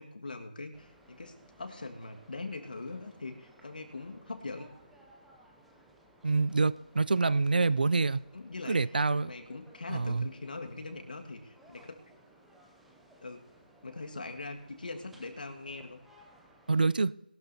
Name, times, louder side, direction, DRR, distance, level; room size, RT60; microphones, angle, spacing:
voice 1, 0.0-4.7 8.3-8.8 9.2-12.0 13.2-13.4 13.8-16.0, left 3 dB, 55° left, 5 dB, 1.7 m, -42 dB
sound 1, 0.7-16.8, right 1 dB, ahead, 0.5 m, -60 dB
voice 2, 6.2-8.2 8.7-9.3 9.9-10.3 16.7-17.1, right 3 dB, 60° right, 19 dB, 0.4 m, -26 dB
20.5 x 12.0 x 2.7 m, 0.90 s
figure-of-eight pair, 170°, 5 cm